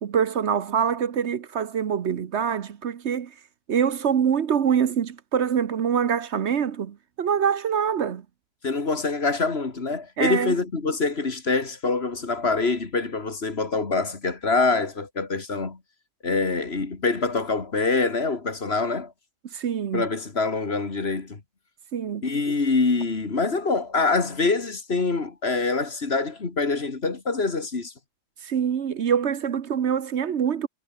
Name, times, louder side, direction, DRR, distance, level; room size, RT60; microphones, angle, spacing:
voice 1, 0.0-3.3 3.7-8.2 10.2-10.5 19.5-20.1 21.9-22.2 28.4-30.7, right 7 dB, 60° right, 1.2 m, -25 dB
voice 2, 8.6-15.8 16.2-19.1 19.9-21.4 22.2-27.9, left 3 dB, 55° left, 2.4 m, -25 dB
omnidirectional pair, 1.3 m